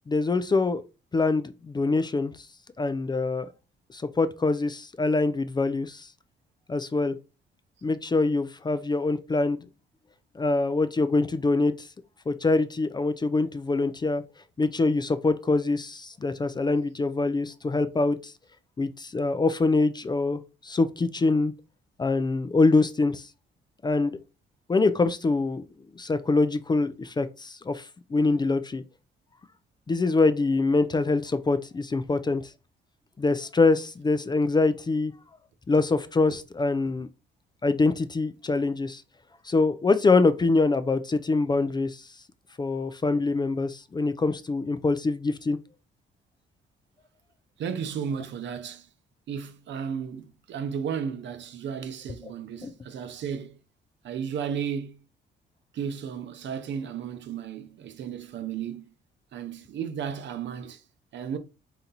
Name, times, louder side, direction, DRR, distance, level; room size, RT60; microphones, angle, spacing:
voice 1, 0.1-0.8 1.1-2.3 2.8-3.5 3.9-6.1 6.7-7.1 7.8-9.6 10.4-11.9 12.3-14.2 14.6-18.3 18.8-21.5 22.0-23.3 23.8-24.2 24.7-25.6 26.0-28.8 29.9-32.5 33.2-35.1 35.7-37.1 37.6-39.0 39.4-42.0 42.6-45.6 52.6-52.7, left 3 dB, 20° left, 0.4 m, -24 dB
voice 2, 47.6-48.9 49.3-53.6 54.0-55.0 55.7-58.9 59.3-60.8 61.1-61.4, right 7 dB, 65° right, 0.7 m, -34 dB
3.9 x 2.9 x 3.9 m
cardioid pair, 90°, 20 cm